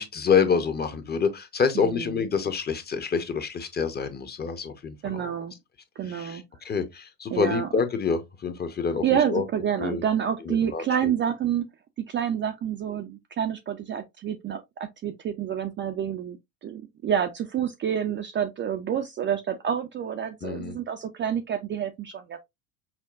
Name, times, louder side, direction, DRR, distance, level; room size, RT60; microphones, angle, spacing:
voice 1, 0.0-5.4 6.0-9.4 9.8-10.0 10.4-11.1 20.4-20.8, left 6 dB, 20° left, 0.7 m, -27 dB
voice 2, 5.0-5.5 6.0-6.4 7.3-7.7 9.0-11.6 12.1-22.4, right 9 dB, 30° right, 0.4 m, -28 dB
5.6 x 2.1 x 2.4 m
supercardioid pair, 95°, 44 cm